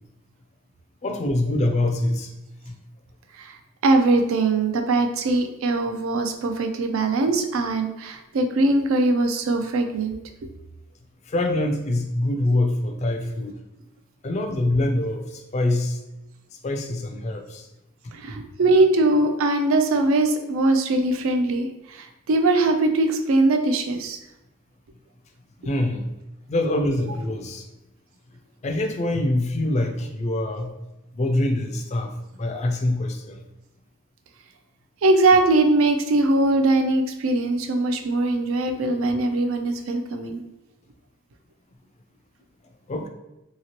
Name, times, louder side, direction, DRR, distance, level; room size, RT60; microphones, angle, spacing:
voice 1, 1.0-2.3 2.7-2.8 11.3-13.6 14.2-16.0 16.6-17.7 18.0-18.1 25.6-26.1 26.5-27.7 28.6-30.7 31.1-32.1 32.4-33.4 42.9-43.1, left 1 dB, 30° left, 5 dB, 0.3 m, -24 dB
voice 2, 3.8-10.2 18.1-24.2 35.0-40.4, right 2 dB, 75° right, 5 dB, 0.4 m, -21 dB
2.9 x 2.8 x 2.8 m, 0.92 s
head